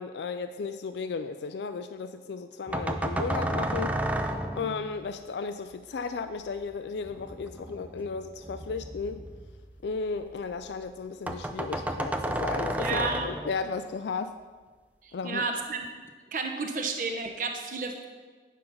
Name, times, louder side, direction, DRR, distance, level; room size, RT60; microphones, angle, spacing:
voice 1, 0.0-4.0 4.6-9.2 9.8-14.3 15.1-15.4, left 4 dB, 75° left, 10 dB, 0.4 m, -34 dB
sound 1, 2.7-5.1 7.0-10.3 10.6-10.7 11.0-11.1 11.3-13.8, right 1 dB, 10° right, 0.4 m, -32 dB
voice 2, 12.8-13.3 15.0-15.9 16.3-18.1, right 4 dB, 50° right, 4 dB, 0.9 m, -31 dB
9.1 x 5.3 x 5.6 m, 1.4 s
head